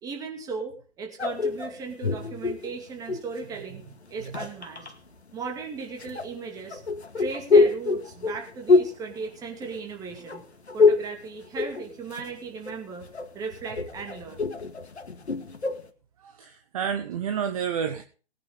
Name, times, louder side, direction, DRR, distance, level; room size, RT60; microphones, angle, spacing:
voice 1, 0.0-3.8 4.1-4.9 5.3-6.8 7.2-10.4 10.7-13.1 13.3-14.5, right 4 dB, 10° right, 3 dB, 2.6 m, -37 dB
sound 1, 1.2-3.4 4.1-4.9 6.0-10.0 10.3-11.1 11.4-12.3 12.7-15.9, left 4 dB, 70° left, 2.1 m, -25 dB
voice 2, 16.2-18.0, right 7 dB, 30° right, 7 dB, 1.2 m, -30 dB
20.0 x 9.4 x 3.7 m, 0.38 s
figure-of-eight pair, 140°, 34 cm